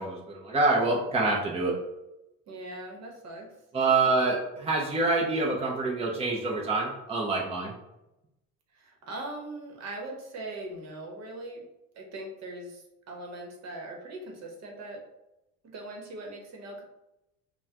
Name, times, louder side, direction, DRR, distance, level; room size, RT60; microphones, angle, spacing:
voice 1, 0.0-1.7 3.7-7.7, right 3 dB, 20° right, -3 dB, 0.7 m, -26 dB
voice 2, 2.5-3.5 3.9-4.0 8.7-11.6 11.9-15.0 15.6-16.8, right 2 dB, 50° right, 1 dB, 1.1 m, -40 dB
5.4 x 2.3 x 2.9 m, 0.91 s
cardioid pair, 120°, 33 cm